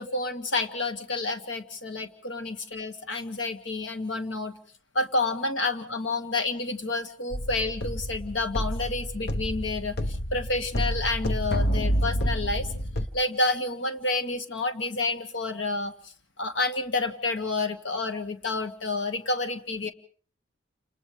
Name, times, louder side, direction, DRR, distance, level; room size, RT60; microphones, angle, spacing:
voice 1, 0.0-4.5 5.0-12.7 13.1-15.9 16.4-19.9, left 2 dB, 75° left, 9 dB, 1.7 m, -29 dB
sound 1, 7.3-13.1, equal, 60° left, 1.1 m, -29 dB
29.0 x 28.0 x 3.4 m, 0.44 s
head